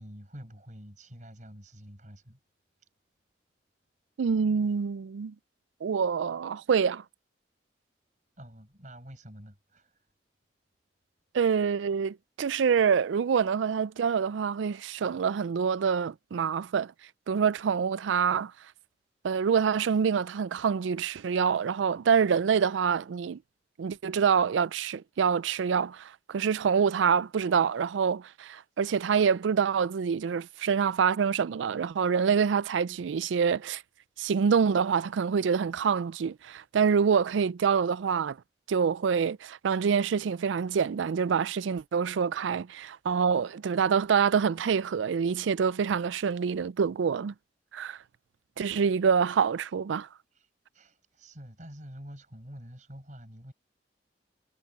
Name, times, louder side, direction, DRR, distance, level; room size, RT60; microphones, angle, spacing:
voice 1, 0.0-2.4 8.4-10.0 50.3-53.5, equal, 40° right, 5.5 m, -47 dB
voice 2, 4.2-5.3 5.8-7.0 11.3-16.9 17.3-18.5 19.2-23.4 23.8-33.8 34.2-38.4 38.7-47.3 47.7-48.0 48.6-50.1, right 6 dB, 85° right, 0.4 m, -26 dB
head